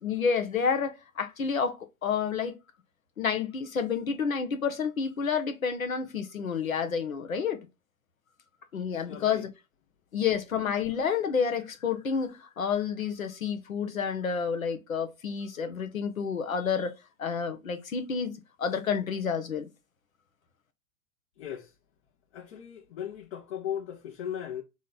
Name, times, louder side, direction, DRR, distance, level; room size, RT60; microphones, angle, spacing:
voice 1, 0.0-2.5 3.2-7.7 8.7-9.5 10.1-16.9 17.2-18.3 18.6-19.7, left 6 dB, 90° left, 0.9 m, -29 dB
voice 2, 8.9-9.4 21.4-21.7 22.3-24.6, left 9 dB, 55° left, 1.0 m, -37 dB
3.9 x 3.2 x 4.0 m
hypercardioid pair, 100°, 40 cm